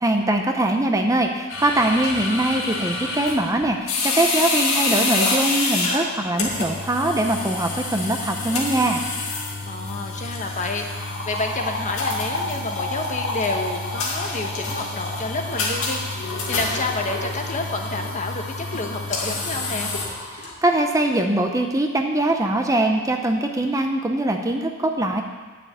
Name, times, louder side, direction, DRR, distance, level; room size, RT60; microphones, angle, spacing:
voice 1, 0.0-9.0 20.3-25.2, right 1 dB, 15° right, 3 dB, 0.7 m, -22 dB
sound 1, 1.5-20.5, left 3 dB, 75° left, 2.2 m, -27 dB
voice 2, 9.7-19.9, left 2 dB, 35° left, 3 dB, 1.2 m, -29 dB
9.6 x 6.8 x 8.6 m, 1.4 s
head